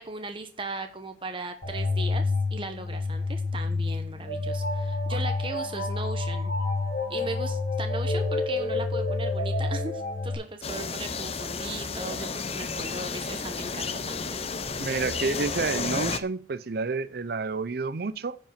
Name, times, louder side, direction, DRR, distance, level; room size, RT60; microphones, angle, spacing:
voice 1, 0.0-6.5 7.1-14.4, right 3 dB, 30° right, 1.0 m, -37 dB
sound 1, 1.6-10.3, left 3 dB, 50° left, 4.2 m, -28 dB
sound 2, 10.6-16.2, left 4 dB, 35° left, 0.7 m, -32 dB
voice 2, 14.8-18.4, right 4 dB, 55° right, 0.6 m, -29 dB
10.0 x 5.4 x 7.2 m
head